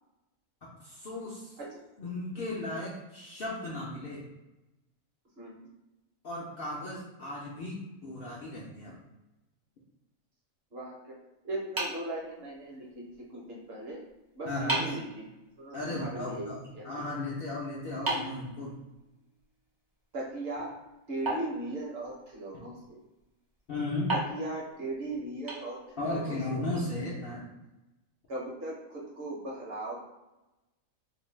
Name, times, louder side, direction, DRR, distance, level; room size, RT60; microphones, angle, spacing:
voice 1, 0.8-1.6 2.0-4.2 6.2-9.0 14.5-15.0 15.7-18.7 23.7-24.1 26.0-27.5, left 2 dB, 60° left, -5 dB, 0.6 m, -36 dB
voice 2, 10.7-11.1 11.4-13.0 13.3-14.0 14.3-15.2 15.6-17.1 20.1-20.7 21.1-23.0 24.3-26.7 28.3-29.9, right 2 dB, 55° right, -3 dB, 0.8 m, -38 dB
sound 1, 11.8-12.9 14.1-14.2 14.7-15.1 18.1-19.2 21.2-22.3 24.1-26.2, right 2 dB, 30° right, 0.4 m, -35 dB
2.6 x 2.1 x 3.1 m, 1.0 s
omnidirectional pair, 1.4 m